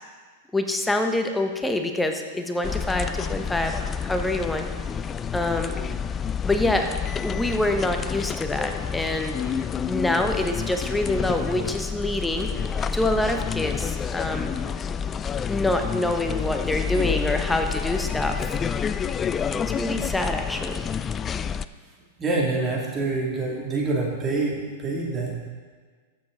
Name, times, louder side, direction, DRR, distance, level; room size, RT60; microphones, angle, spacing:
voice 1, 0.5-3.8 4.0-4.7 5.3-5.7 6.4-6.9 7.2-9.4 9.8-12.5 12.9-14.5 15.5-18.6 19.5-20.8, left 1 dB, 10° left, 5 dB, 0.9 m, -26 dB
sound 1, 2.6-21.7, left 7 dB, 25° left, 0.3 m, -29 dB
voice 2, 22.2-25.5, right 3 dB, 25° right, -3 dB, 2.6 m, -26 dB
14.0 x 7.2 x 3.9 m, 1.5 s
hypercardioid pair, 105°, 0 cm